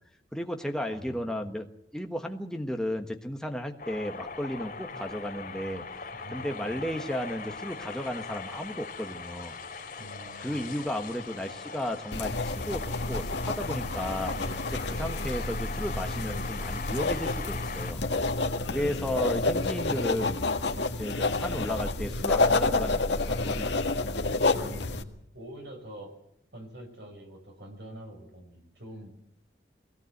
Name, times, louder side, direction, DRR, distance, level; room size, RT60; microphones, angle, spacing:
voice 1, 0.3-1.7 1.9-5.8 6.3-9.5 10.4-14.3 14.9-18.0 18.7-20.4 21.0-24.2, equal, 5° left, 3 dB, 1.4 m, -34 dB
voice 2, 0.9-1.6 4.9-5.1 6.1-6.9 10.0-10.9 14.2-14.7 17.4-18.2 18.7-19.3 24.1-26.1 26.5-29.1, equal, 70° right, 4 dB, 5.3 m, -46 dB
sound 1, 3.8-17.9, left 4 dB, 50° left, 3.2 m, -40 dB
sound 2, 12.1-25.0, left 3 dB, 75° left, 1.6 m, -29 dB
21.5 x 17.5 x 8.0 m, 0.77 s
head